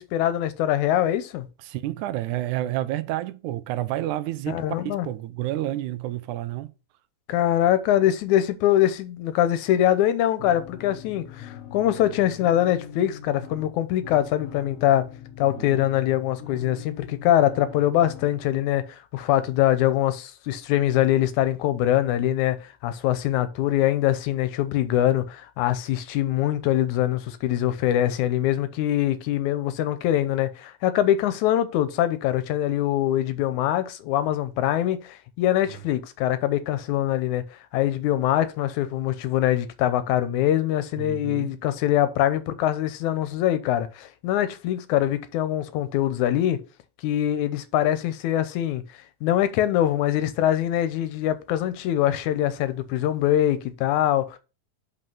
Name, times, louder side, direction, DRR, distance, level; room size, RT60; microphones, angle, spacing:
voice 1, 0.0-1.5 4.5-5.1 7.3-15.1 15.4-37.4 37.7-46.6 47.0-48.8 49.2-54.4, left 12 dB, 85° left, 2.1 m, -23 dB
voice 2, 1.6-6.7 15.6-15.8 41.0-41.6, right 14 dB, 80° right, 2.0 m, -30 dB
sound 1, 10.4-18.4, left 9 dB, 55° left, 2.4 m, -42 dB
5.6 x 5.4 x 5.5 m
omnidirectional pair, 3.5 m